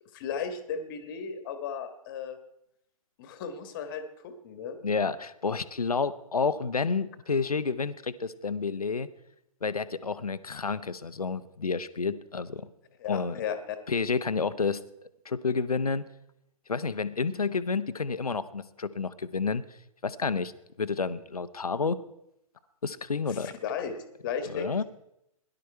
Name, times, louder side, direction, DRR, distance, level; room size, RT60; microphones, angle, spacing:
voice 1, 0.1-2.4 3.2-4.8 13.0-13.8 23.3-24.8, left 7 dB, 35° left, 9 dB, 1.5 m, -35 dB
voice 2, 4.8-9.1 9.6-12.7 13.1-13.4 13.9-14.8 15.2-16.0 16.7-19.6 20.0-20.5 20.8-22.0 22.8-23.5 24.5-24.8, left 4 dB, 75° left, 13 dB, 0.8 m, -30 dB
17.5 x 11.0 x 4.6 m, 0.83 s
figure-of-eight pair, 125°, 19 cm